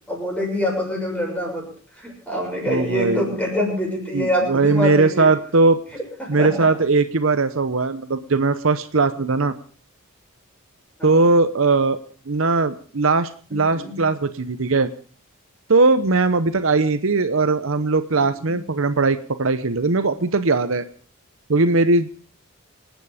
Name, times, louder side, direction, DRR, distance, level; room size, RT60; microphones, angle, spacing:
voice 1, 0.1-1.7 2.0-5.3 6.2-6.7 13.5-14.0 18.1-18.6, left 1 dB, 5° left, -1 dB, 6.8 m, -25 dB
voice 2, 2.7-3.4 4.1-5.8 6.3-9.5 11.0-12.0 12.3-14.9 15.7-20.9 21.5-22.1, right 3 dB, 65° right, 11 dB, 0.8 m, -19 dB
26.5 x 9.3 x 5.0 m, 0.42 s
head